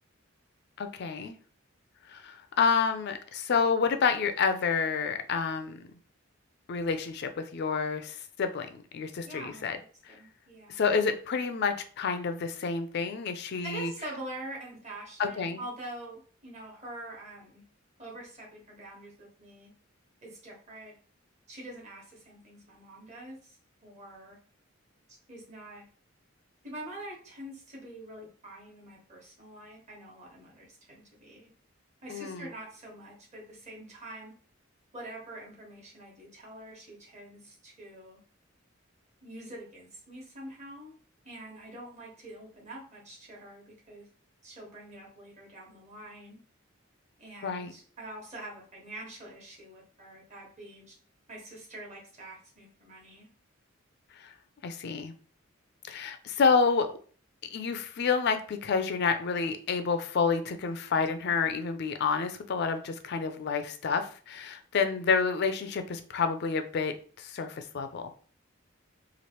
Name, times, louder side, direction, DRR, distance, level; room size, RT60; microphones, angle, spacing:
voice 1, 0.8-1.4 2.1-5.9 6.7-9.8 10.1-10.2 10.7-13.9 15.2-15.6 32.1-32.5 47.4-47.7 54.1-54.3 54.6-55.1 55.9-57.0 57.5-68.1, left 5 dB, 55° left, 8 dB, 0.4 m, -29 dB
voice 2, 9.2-9.7 10.1-10.8 13.6-17.6 18.0-19.7 20.2-21.0 21.5-23.6 23.8-24.4 25.3-25.9 26.6-31.5 32.0-34.3 34.9-38.2 39.2-41.0 41.2-44.1 44.4-46.4 47.2-50.9 51.3-53.3 64.7-65.0, right 1 dB, 35° right, -2 dB, 1.2 m, -45 dB
3.1 x 2.4 x 2.9 m, 0.42 s
head